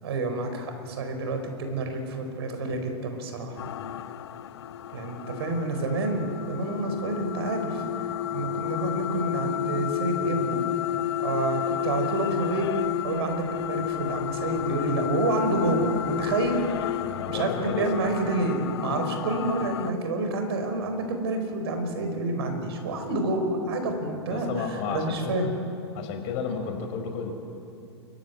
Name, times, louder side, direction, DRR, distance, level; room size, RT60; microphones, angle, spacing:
voice 1, 0.0-3.6 4.9-7.8 8.3-10.6 11.2-12.7 13.0-16.6 17.3-25.5, right 2 dB, 65° right, 5 dB, 4.9 m, -28 dB
sound 1, 3.6-19.9, left 12 dB, 70° left, 0.7 m, -31 dB
voice 2, 17.0-18.1 24.3-25.5 25.9-27.3, left 6 dB, 45° left, 4 dB, 5.0 m, -32 dB
27.5 x 15.5 x 9.7 m, 2.7 s
hypercardioid pair, 100°, 14 cm